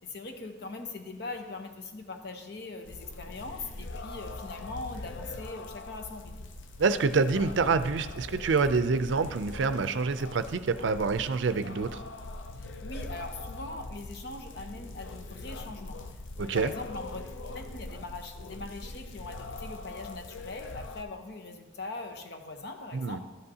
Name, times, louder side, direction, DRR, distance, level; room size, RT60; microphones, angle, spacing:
voice 1, 0.0-6.3 12.5-16.0 16.4-23.3, left 3 dB, 60° left, 5 dB, 0.9 m, -41 dB
Mexican federal police hymn on rain, 2.9-21.0, left 2 dB, 80° left, 0.5 m, -42 dB
voice 2, 6.8-12.0 16.4-16.7 22.9-23.2, right 4 dB, 75° right, 12 dB, 0.4 m, -27 dB
12.5 x 7.9 x 2.8 m, 1.2 s
head